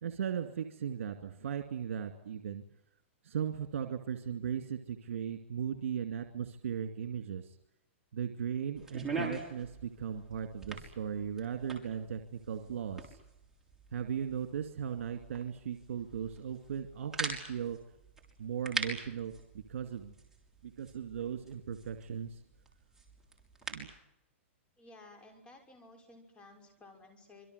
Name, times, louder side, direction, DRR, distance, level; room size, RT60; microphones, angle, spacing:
voice 1, 0.0-2.6 3.2-7.6 8.1-13.2 13.9-17.8 18.4-19.3 19.7-20.1 20.6-22.4 23.7-23.9, right 8 dB, 80° right, 6 dB, 2.4 m, -37 dB
sound 1, 8.7-24.0, right 3 dB, 5° right, 6.3 m, -44 dB
voice 2, 24.8-27.5, left 2 dB, 15° left, 4 dB, 5.9 m, -55 dB
26.5 x 24.0 x 8.2 m, 0.82 s
hypercardioid pair, 150°, 7 cm